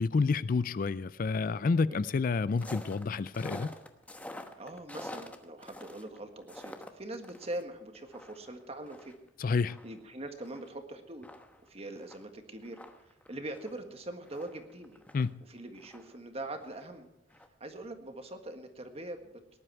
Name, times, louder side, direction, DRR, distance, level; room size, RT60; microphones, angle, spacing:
voice 1, 0.0-3.7 9.4-9.8 15.1-15.4, left 4 dB, 50° left, 0.4 m, -29 dB
sound 1, 2.6-7.6 7.9-10.7 11.0-11.1 11.2-15.3 15.7-17.0 17.3-17.5, left 1 dB, 10° left, 1.1 m, -47 dB
voice 2, 4.6-9.1 9.8-11.3 11.6-12.8 13.3-15.0 15.5-17.1 17.6-19.4, right 1 dB, 35° right, 1.6 m, -42 dB
19.0 x 11.0 x 4.6 m
head